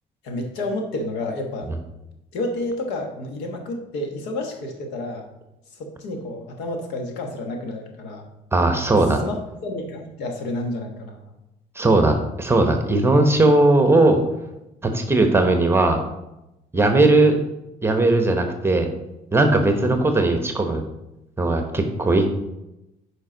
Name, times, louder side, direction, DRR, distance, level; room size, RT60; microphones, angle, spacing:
voice 1, 0.2-1.7 2.3-5.2 5.7-8.3 8.9-11.2 19.8-20.0, left 2 dB, 90° left, 4 dB, 1.4 m, -30 dB
voice 2, 8.5-9.2 11.8-14.2 14.9-16.0 16.7-17.4 17.8-18.9 19.3-20.8 21.4-22.3, right 2 dB, 15° right, 5 dB, 1.0 m, -18 dB
9.4 x 5.1 x 3.9 m, 0.92 s
cardioid pair, 110°, 17 cm